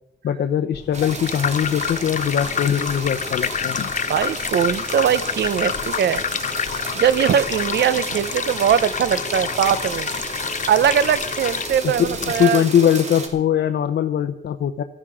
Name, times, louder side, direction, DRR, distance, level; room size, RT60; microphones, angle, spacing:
voice 1, 0.2-3.9 11.8-14.8, left 9 dB, 90° left, 8 dB, 0.8 m, -21 dB
sound 1, 0.7-12.5, left 7 dB, 45° left, 0.5 m, -28 dB
sound 2, 0.9-13.3, right 3 dB, 40° right, 2.9 m, -33 dB
voice 2, 4.1-6.2 7.0-10.1 10.7-12.6, right 9 dB, 90° right, 15 dB, 0.8 m, -20 dB
17.0 x 13.0 x 4.9 m, 0.82 s
wide cardioid pair, 115°, 17 cm